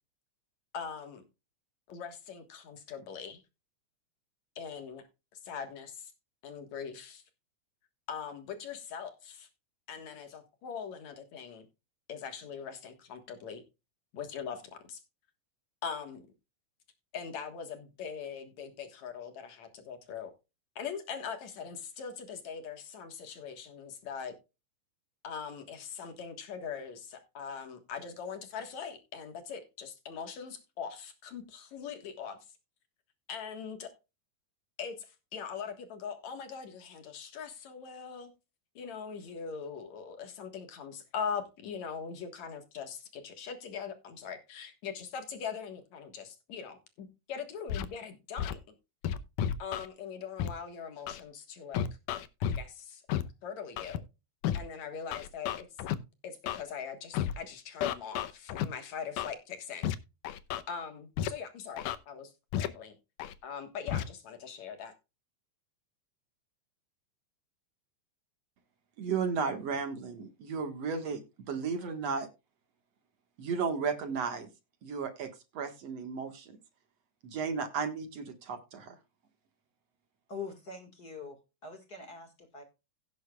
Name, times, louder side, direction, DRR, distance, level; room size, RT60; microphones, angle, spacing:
voice 1, 0.7-1.2 1.9-3.4 4.6-5.0 5.4-6.1 6.4-7.2 8.1-9.5 9.9-11.7 12.1-13.6 14.1-15.0 15.8-16.3 17.1-20.3 20.8-24.3 25.2-32.4 33.3-33.9 34.8-38.3 38.8-48.6 49.6-51.9 52.4-53.0 53.4-54.0 54.5-55.7 56.2-59.9 60.7-63.0 63.4-64.9, left 6 dB, 65° left, 7 dB, 2.8 m, -41 dB
Scratching (performance technique), 47.7-47.9 48.4-48.5 49.0-49.9 50.4-50.5 51.1-51.2 51.7-52.6 53.1-53.2 53.8-54.0 54.4-54.6 55.1-56.0 56.5-56.6 57.1-57.3 57.8-58.7 59.2-59.3 59.8-60.0 60.2-60.6 61.2-61.3 61.8-62.0 62.5-62.7 63.2-63.3 63.9-64.0, left 10 dB, 85° left, 2.4 m, -32 dB
voice 2, 69.0-71.2 71.5-72.3 73.4-74.5 74.8-76.6 77.2-78.9, right 5 dB, 60° right, 7 dB, 2.6 m, -34 dB
voice 3, 80.3-82.6, left 4 dB, 35° left, 6 dB, 2.1 m, -44 dB
16.5 x 8.3 x 2.4 m, 0.27 s
omnidirectional pair, 3.6 m